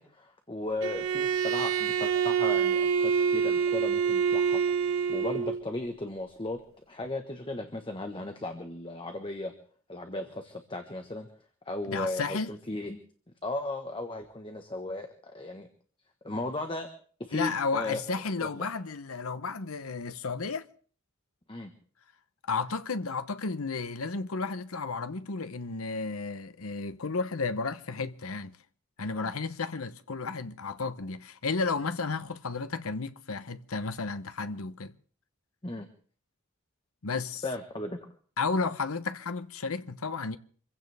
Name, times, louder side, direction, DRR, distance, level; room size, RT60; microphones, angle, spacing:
voice 1, 0.0-4.6 5.1-6.6 6.9-9.5 9.9-11.3 11.7-13.0 13.4-15.7 16.2-16.9 17.2-18.0 18.4-18.7 21.5-21.7 29.1-29.3 35.6-35.9 37.4-38.0, left 2 dB, 25° left, 1.3 m, -36 dB
Bowed string instrument, 0.8-5.6, right 7 dB, 75° right, 0.9 m, -26 dB
voice 2, 11.9-12.6 17.3-20.7 22.4-28.6 29.0-34.9 37.0-37.4 38.4-40.4, left 4 dB, 85° left, 0.9 m, -33 dB
26.0 x 16.0 x 3.5 m
head